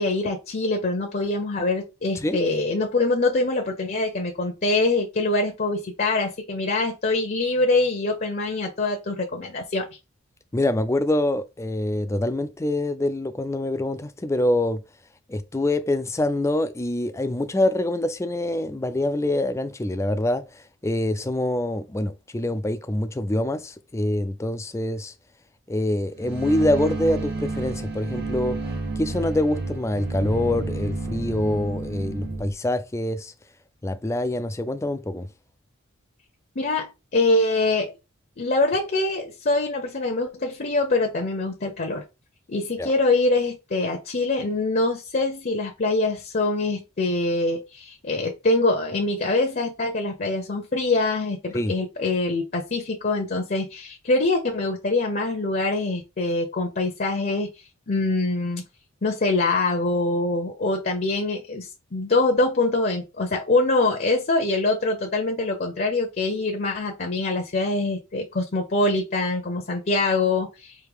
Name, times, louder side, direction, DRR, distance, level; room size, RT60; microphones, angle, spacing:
voice 1, 0.0-9.9 36.6-38.0 38.4-42.0 42.5-57.5 57.9-58.6 59.0-70.8, left 2 dB, 40° left, 0.7 m, -24 dB
voice 2, 10.5-14.8 15.3-25.1 25.7-28.6 29.0-33.3 33.8-35.3 42.8-42.9 51.5-51.7, left 1 dB, 15° left, 0.4 m, -25 dB
sound 1, 26.2-32.5, right 3 dB, 50° right, 0.8 m, -30 dB
4.7 x 2.8 x 3.5 m
head